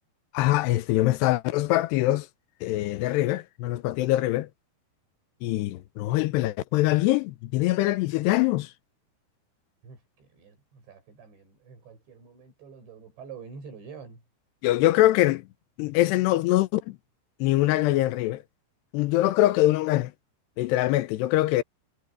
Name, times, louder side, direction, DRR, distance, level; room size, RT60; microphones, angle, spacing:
voice 1, 0.3-2.3 2.6-4.5 5.4-8.7 14.6-15.4 15.8-17.0 17.4-18.4 18.9-20.1 20.6-21.6, left 16 dB, 80° left, 2.8 m, -23 dB
voice 2, 9.8-14.2, right 6 dB, 90° right, 9.8 m, -46 dB
omnidirectional pair, 5.0 m